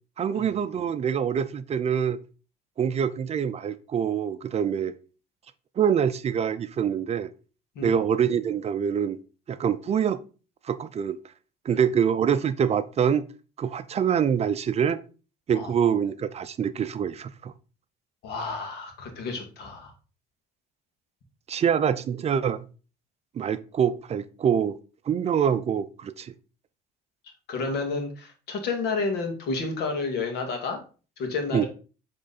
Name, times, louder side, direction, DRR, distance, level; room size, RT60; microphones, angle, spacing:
voice 1, 0.2-2.2 2.8-4.9 5.8-7.3 7.8-9.2 9.5-10.2 10.7-11.2 11.7-13.2 13.6-15.0 15.5-17.5 21.5-22.6 23.4-24.8 25.1-26.3 31.5-31.7, right 8 dB, 40° right, 0.5 m, -25 dB
voice 2, 18.2-19.9 27.5-30.8 31.2-31.7, left 4 dB, 75° left, 2.0 m, -30 dB
7.7 x 3.8 x 4.1 m
cardioid pair, 110°, 17 cm